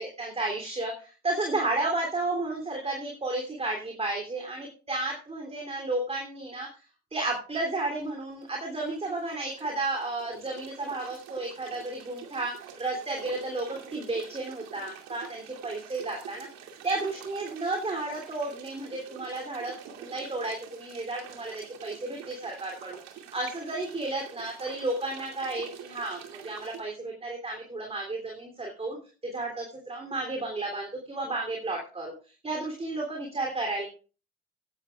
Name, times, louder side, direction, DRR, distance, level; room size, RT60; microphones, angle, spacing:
voice 1, 0.0-6.7 7.1-16.5 16.8-29.0 29.2-33.9, right 2 dB, 20° right, 1 dB, 3.2 m, -32 dB
sound 1, 8.2-26.8, right 9 dB, 60° right, 2.5 m, -47 dB
17.0 x 11.0 x 2.4 m, 0.36 s
hypercardioid pair, 60°, 31 cm